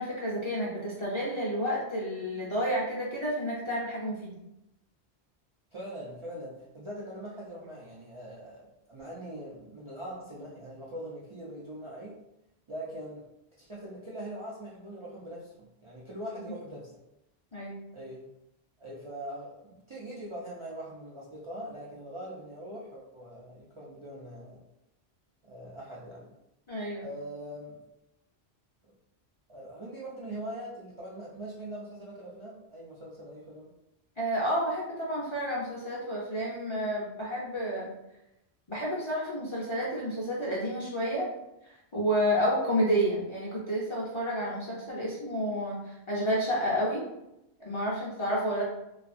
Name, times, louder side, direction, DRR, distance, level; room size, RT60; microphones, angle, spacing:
voice 1, 0.0-4.4 17.5-17.8 26.7-27.1 34.2-37.9 38.7-41.3 41.6-47.0 47.6-48.6, equal, 35° left, -6 dB, 0.5 m, -30 dB
voice 2, 5.7-12.2 12.7-13.2 13.6-16.9 17.9-18.2 18.8-24.6 25.4-26.3 27.0-27.8 29.5-33.7, right 1 dB, 45° right, -6 dB, 0.4 m, -42 dB
2.6 x 2.4 x 2.5 m, 0.87 s
omnidirectional pair, 1.1 m